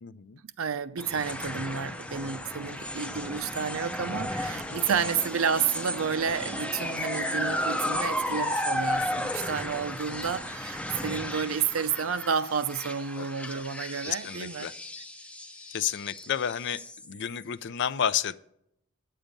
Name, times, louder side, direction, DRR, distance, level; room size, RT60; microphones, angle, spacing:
voice 1, 0.0-0.4 8.3-8.4 13.1-13.3 14.0-14.7 15.7-18.4, left 9 dB, 55° left, 0.4 m, -31 dB
voice 2, 0.6-14.7, right 6 dB, 70° right, 0.5 m, -30 dB
sound 1, 1.0-17.4, left 1 dB, 5° left, 0.5 m, -34 dB
9.0 x 8.6 x 5.2 m
head